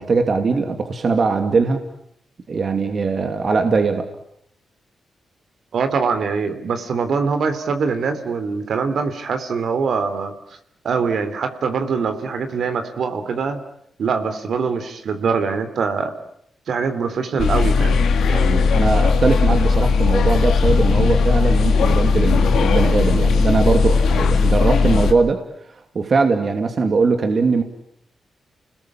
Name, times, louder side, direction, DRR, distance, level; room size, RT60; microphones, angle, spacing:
voice 1, 0.0-1.8 2.5-4.1 18.7-25.4 25.9-27.6, right 4 dB, 50° right, 6 dB, 2.6 m, -20 dB
voice 2, 5.7-10.3 10.8-13.6 14.0-16.1 16.7-18.0 18.3-18.7, right 5 dB, 70° right, 8 dB, 3.3 m, -23 dB
sound 1, 17.4-25.1, left 4 dB, 85° left, 2.5 m, -17 dB
30.0 x 20.5 x 8.8 m, 0.72 s
cardioid pair, 80°, 0 cm